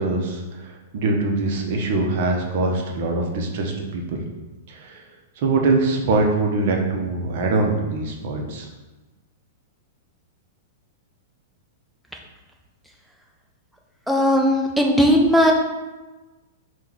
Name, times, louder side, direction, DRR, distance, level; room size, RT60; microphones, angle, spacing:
voice 1, 0.0-4.2 4.7-5.0 5.4-8.7, right 3 dB, 45° right, 1 dB, 0.6 m, -23 dB
voice 2, 14.1-15.5, equal, ahead, 0 dB, 0.4 m, -17 dB
4.4 x 2.2 x 3.9 m, 1.2 s
supercardioid pair, 175°, 0 cm